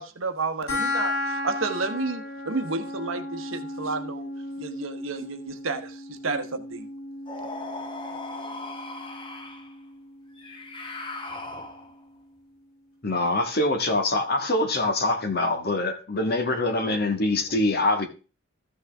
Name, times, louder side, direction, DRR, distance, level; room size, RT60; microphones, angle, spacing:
voice 1, 0.0-4.3 4.6-6.9, right 3 dB, 65° right, 1.1 m, -31 dB
sound 1, 0.7-11.7, left 2 dB, 70° left, 6.7 m, -35 dB
sound 2, 7.3-9.7 10.4-12.0, left 2 dB, 25° left, 1.1 m, -38 dB
voice 2, 7.5-8.9 11.3-11.7 17.3-17.9, left 1 dB, 25° right, 3.8 m, -54 dB
voice 3, 13.0-18.1, left 2 dB, 45° left, 1.6 m, -24 dB
14.0 x 6.3 x 3.5 m
head